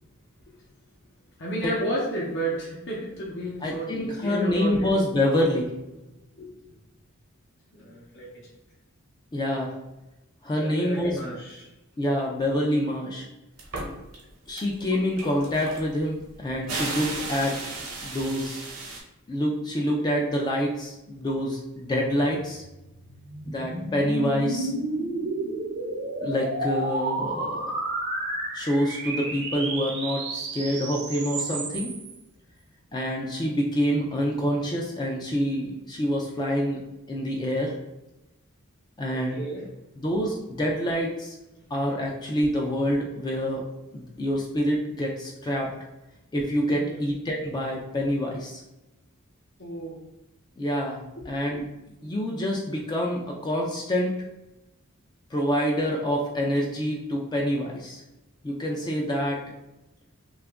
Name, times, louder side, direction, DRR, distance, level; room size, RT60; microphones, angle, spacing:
voice 1, 1.4-4.9 6.4-6.8 7.7-8.5 10.6-11.7 39.1-39.7 46.7-47.0 49.6-50.0 51.2-51.3, right 1 dB, 60° left, -6 dB, 0.7 m, -33 dB
voice 2, 3.6-5.7 9.3-9.7 10.4-11.3 12.0-13.3 14.5-17.6 18.0-18.6 19.3-22.6 23.5-24.7 26.2-27.6 28.5-31.9 32.9-36.8 37.1-37.8 39.0-39.4 40.0-41.3 41.7-43.6 43.9-45.7 46.3-48.6 50.6-51.6 52.0-54.2 55.3-58.0 58.4-59.4, equal, 20° left, -1 dB, 0.3 m, -26 dB
sound 1, 13.6-14.2 14.5-19.0, right 3 dB, 85° right, 0.9 m, -35 dB
sound 2, 22.4-32.1, right 2 dB, 50° right, 0.5 m, -32 dB
2.8 x 2.4 x 3.4 m, 0.97 s
head